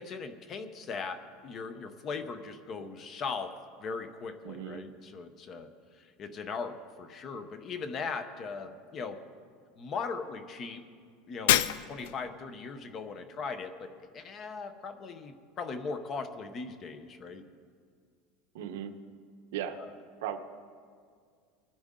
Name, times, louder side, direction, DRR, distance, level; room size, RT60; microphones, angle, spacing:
voice 1, 0.0-5.7 6.0-9.2 9.8-10.8 11.3-11.6 11.9-17.4 19.7-19.9, left 4 dB, 25° left, 9 dB, 0.7 m, -39 dB
voice 2, 4.4-4.8 18.5-18.9 19.5-19.8 20.2-20.4, right 10 dB, 85° right, 7 dB, 1.0 m, -36 dB
Shatter, 11.5-12.3, left 12 dB, 80° left, 0.4 m, -26 dB
22.5 x 10.5 x 3.7 m, 2.1 s
cardioid pair, 180°, 0 cm